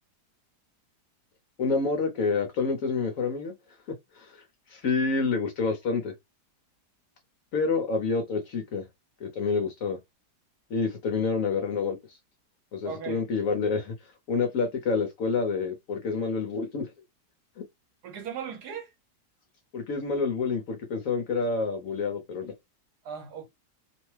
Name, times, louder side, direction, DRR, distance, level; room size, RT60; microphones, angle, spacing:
voice 1, 1.6-3.5 4.2-4.3 4.7-6.1 7.5-8.8 9.2-10.0 10.7-12.0 12.7-13.9 14.3-16.9 17.6-17.7 19.7-22.5, left 4 dB, 60° left, 1.0 m, -28 dB
voice 2, 12.8-13.2 18.0-18.9 23.0-23.5, right 7 dB, 70° right, 1.3 m, -37 dB
2.9 x 2.1 x 3.1 m
omnidirectional pair, 1.8 m